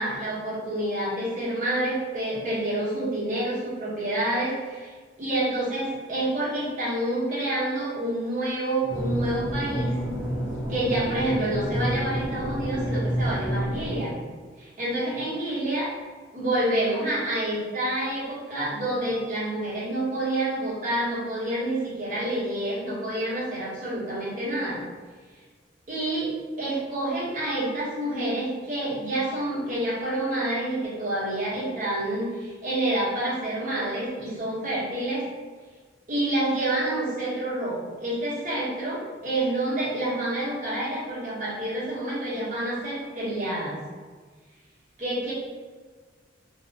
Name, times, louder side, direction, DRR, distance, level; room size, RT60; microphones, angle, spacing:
voice 1, 0.0-4.9 5.2-9.9 10.7-14.1 14.6-15.9 16.3-24.8 25.9-35.3 36.1-43.8 45.0-45.3, right 1 dB, 45° right, -8 dB, 1.0 m, -28 dB
sound 1, 8.9-14.0, equal, 90° left, 0.6 m, -29 dB
2.7 x 2.0 x 2.7 m, 1.5 s
head